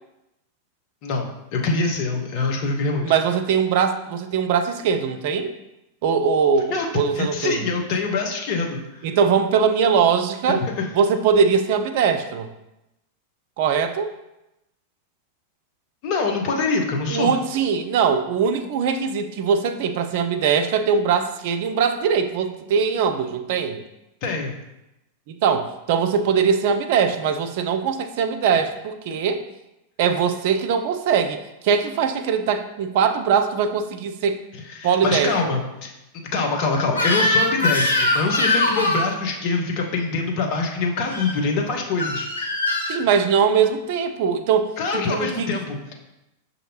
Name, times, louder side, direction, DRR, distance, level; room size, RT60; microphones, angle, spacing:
voice 1, 1.5-3.1 6.7-6.9 7.1-9.0 10.5-10.9 16.0-17.3 24.2-24.6 34.7-35.9 36.3-42.3 44.8-45.9, left 3 dB, 45° left, 1 dB, 0.8 m, -24 dB
voice 2, 3.0-5.5 6.0-7.7 9.0-10.6 10.9-12.5 13.6-14.1 17.1-23.8 25.3-29.4 30.0-34.4 34.8-35.3 42.9-44.7 44.9-45.5, right 6 dB, 50° right, 8 dB, 0.4 m, -21 dB
Crying sobbing / Screech, 36.9-39.1 41.0-41.3 42.0-43.0, left 2 dB, 75° left, 0.6 m, -22 dB
6.3 x 2.7 x 2.7 m, 0.91 s
figure-of-eight pair, 90°, 0 cm